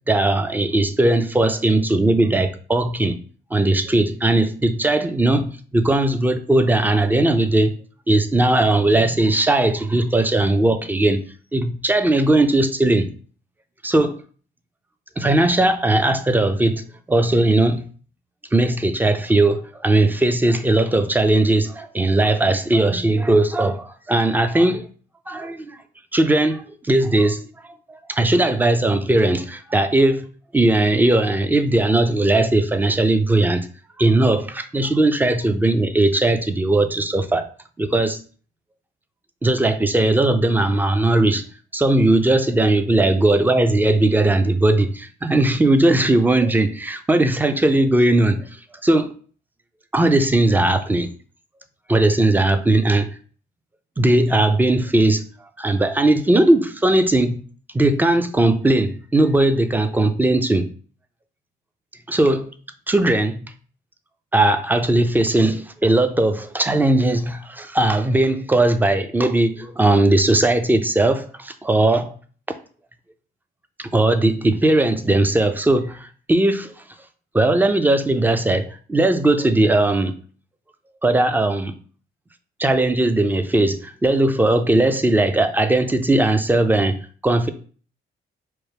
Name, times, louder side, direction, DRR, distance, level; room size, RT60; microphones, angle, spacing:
voice 1, 0.1-3.2 3.5-7.7 8.1-11.2 11.5-13.1 13.8-14.2 15.2-16.8 17.1-17.8 18.5-24.9 25.3-25.8 26.1-27.5 27.9-30.3 30.5-33.7 34.0-37.5 37.8-38.2 39.4-41.4 41.7-48.4 48.8-49.1 49.9-51.1 51.9-53.1 54.0-55.2 55.6-57.4 57.7-60.7 62.1-62.5 62.9-63.4 64.3-72.2 73.8-76.7 77.3-80.1 81.0-81.7 82.6-87.5, right 2 dB, 10° right, 0.4 m, -18 dB
4.4 x 2.1 x 3.3 m
cardioid pair, 90°, 20 cm